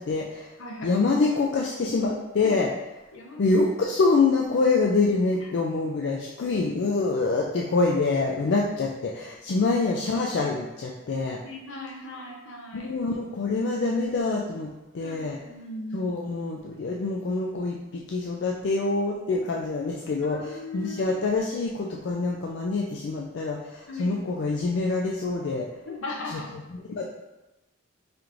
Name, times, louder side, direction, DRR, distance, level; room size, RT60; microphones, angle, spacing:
voice 1, 0.0-0.5 0.8-2.7 3.4-11.4 12.7-15.4 15.9-25.7 26.3-26.4 26.7-27.1, left 3 dB, 55° left, -1 dB, 0.3 m, -26 dB
voice 2, 0.6-1.0 2.4-2.6 3.1-3.5 11.4-12.9 15.0-16.1 20.2-21.2 23.9-24.1 25.9-26.5, left 2 dB, 75° left, -1 dB, 0.8 m, -38 dB
5.0 x 3.0 x 2.5 m, 1.0 s
head